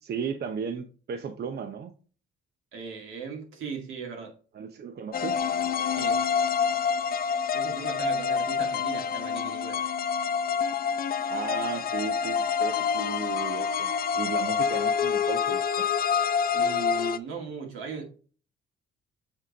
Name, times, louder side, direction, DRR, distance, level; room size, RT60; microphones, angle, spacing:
voice 1, 0.0-1.9 4.5-5.5 11.3-15.9, right 6 dB, 55° right, 0.7 m, -35 dB
voice 2, 2.7-4.3 5.9-6.2 7.5-9.8 16.5-18.1, right 6 dB, 85° right, 2.1 m, -38 dB
sound 1, 5.1-17.2, left 7 dB, 50° left, 0.6 m, -27 dB
8.0 x 3.7 x 4.0 m
cardioid pair, 90°, 20 cm